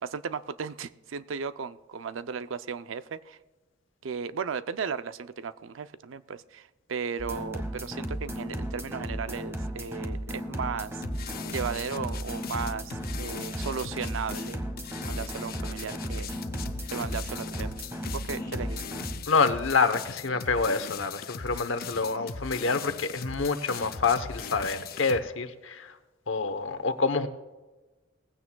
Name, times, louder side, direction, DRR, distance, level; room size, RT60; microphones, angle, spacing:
voice 1, 0.0-3.4 4.0-11.0 11.5-14.6 15.0-16.3 16.9-17.7 18.1-18.8, right 6 dB, 80° right, 13 dB, 0.5 m, -35 dB
sound 1, 7.2-19.1, equal, 15° right, 1.3 m, -35 dB
sound 2, 11.0-25.2, left 6 dB, 50° left, 0.6 m, -40 dB
voice 2, 19.3-26.0 26.3-27.3, left 4 dB, 75° left, 10 dB, 0.9 m, -27 dB
18.5 x 15.5 x 2.3 m, 1.2 s
head